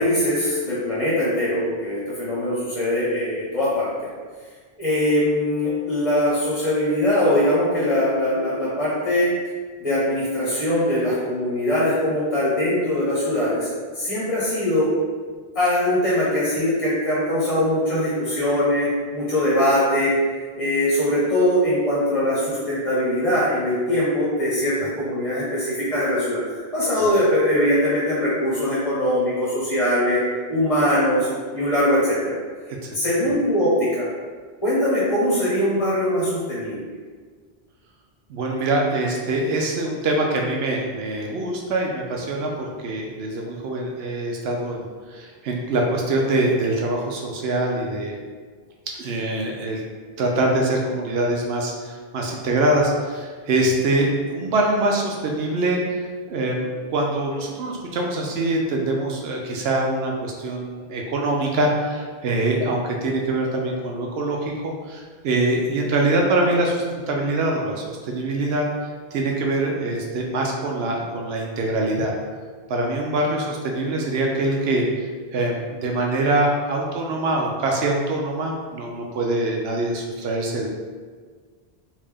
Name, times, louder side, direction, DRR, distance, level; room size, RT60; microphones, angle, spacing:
voice 1, 0.0-3.9 4.8-9.3 9.8-13.7 14.0-14.9 15.5-18.9 19.1-20.1 20.5-30.2 30.5-31.3 31.5-32.4 32.8-34.1 34.6-36.8, left 1 dB, 35° left, -9 dB, 1.0 m, -21 dB
voice 2, 38.3-48.2 49.0-49.8 50.2-55.8 56.3-68.6 69.1-72.1 72.7-74.9 75.3-80.7, right 2 dB, 80° right, 0 dB, 0.8 m, -24 dB
3.6 x 2.6 x 3.4 m, 1.5 s
omnidirectional pair, 1.0 m